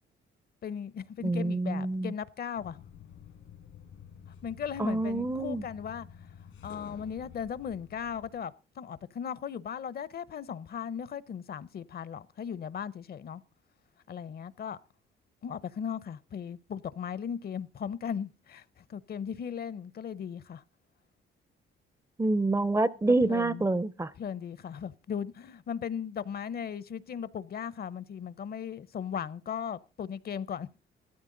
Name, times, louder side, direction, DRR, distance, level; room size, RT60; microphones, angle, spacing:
voice 1, 0.6-2.8 4.4-6.1 6.6-13.4 14.1-14.8 15.4-20.6 23.2-23.7 24.2-30.7, left 7 dB, 50° left, 0.7 m, -37 dB
voice 2, 1.2-2.1 4.8-5.6 22.2-24.1, right 2 dB, 15° right, 0.5 m, -27 dB
sound 1, 2.6-8.4, left 8 dB, 80° left, 1.8 m, -50 dB
15.0 x 13.5 x 3.8 m
cardioid pair, 90°, 20 cm